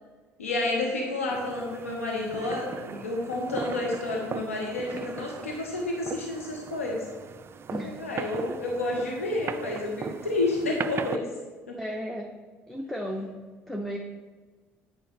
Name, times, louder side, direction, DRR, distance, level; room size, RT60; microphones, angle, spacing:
voice 1, 0.4-7.0 7.7-11.2 11.7-11.8, left 2 dB, 90° left, -1 dB, 0.8 m, -30 dB
sound 1, 1.3-11.2, right 6 dB, 35° right, 0.3 m, -38 dB
voice 2, 7.7-8.0 8.5-8.6 11.8-12.3 12.7-13.3 13.7-14.0, equal, 5° left, 1 dB, 0.8 m, -34 dB
8.4 x 5.1 x 3.5 m, 1.4 s
hypercardioid pair, 55°, 7 cm